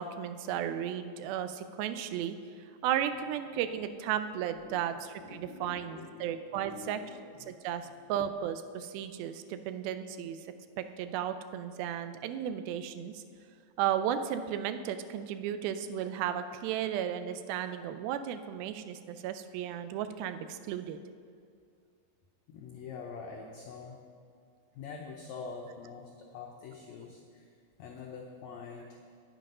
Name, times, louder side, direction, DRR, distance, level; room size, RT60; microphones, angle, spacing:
voice 1, 0.0-2.4 2.8-7.0 7.5-10.4 10.8-13.2 13.8-21.0, right 9 dB, 90° right, 10 dB, 2.4 m, -34 dB
voice 2, 5.2-8.0 22.5-24.0 24.7-29.1, left 5 dB, 85° left, 0 dB, 1.6 m, -46 dB
9.7 x 7.6 x 5.4 m, 2.2 s
omnidirectional pair, 4.2 m